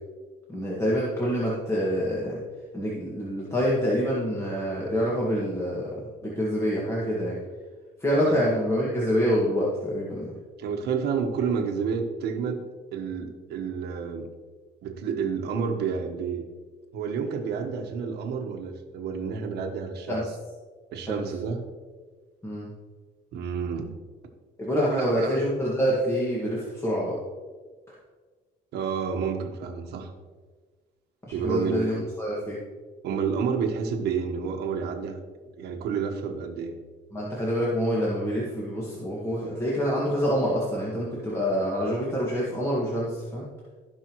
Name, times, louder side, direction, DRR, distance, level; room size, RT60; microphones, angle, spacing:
voice 1, 0.5-2.4 2.7-5.9 6.2-7.4 8.0-10.3 20.1-20.2 20.9-21.2 22.4-22.7 24.6-27.1 31.2-32.6 37.1-43.5, equal, 15° left, -6 dB, 2.0 m, -26 dB
voice 2, 10.6-12.6 12.9-14.3 14.8-16.4 16.9-20.2 20.9-21.6 23.3-23.9 24.9-25.4 28.7-30.1 31.3-32.0 33.0-35.2 35.6-36.7, right 6 dB, 75° right, 4 dB, 1.4 m, -30 dB
16.5 x 5.5 x 3.1 m, 1.4 s
cardioid pair, 110°, 17 cm